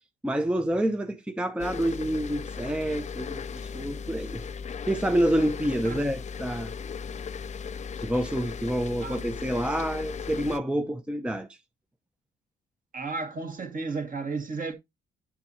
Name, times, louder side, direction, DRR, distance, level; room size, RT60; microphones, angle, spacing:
voice 1, 0.2-4.5 4.9-6.7 8.0-11.6, right 1 dB, 5° right, 0.7 m, -28 dB
sound 1, 1.6-10.6, left 6 dB, 35° left, 0.5 m, -37 dB
voice 2, 12.9-14.7, right 4 dB, 45° right, 2.1 m, -33 dB
8.2 x 7.6 x 2.7 m
cardioid pair, 90°, 20 cm